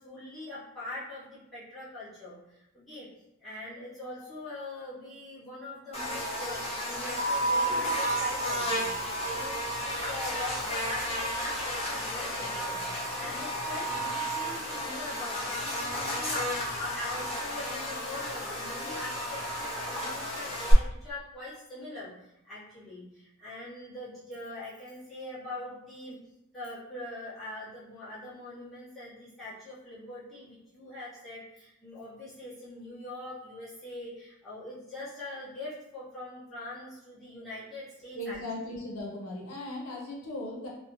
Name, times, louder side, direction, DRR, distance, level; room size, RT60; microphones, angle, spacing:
voice 1, 0.0-3.1 3.4-26.2 26.5-38.4, left 2 dB, ahead, -12 dB, 1.0 m, -42 dB
Buzz, 5.9-20.7, equal, 25° left, 0.5 m, -33 dB
sound 1, 7.2-11.8, right 3 dB, 50° right, 0.3 m, -32 dB
voice 2, 38.1-40.7, left 1 dB, 70° left, -3 dB, 0.6 m, -37 dB
2.4 x 2.0 x 2.9 m, 0.86 s
head